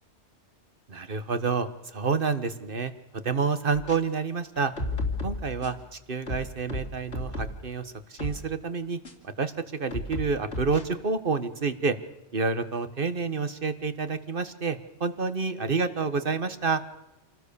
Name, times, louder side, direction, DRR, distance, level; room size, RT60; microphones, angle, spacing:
voice 1, 0.9-4.7 5.2-11.9 12.3-16.8, right 4 dB, 50° right, 10 dB, 1.6 m, -29 dB
sound 1, 3.7-4.0 4.6-5.8 6.3-7.7 8.2-8.4 9.0-9.1 9.9-10.8, left 2 dB, 80° left, 3.4 m, -33 dB
27.5 x 19.0 x 7.0 m, 0.99 s
omnidirectional pair, 1.2 m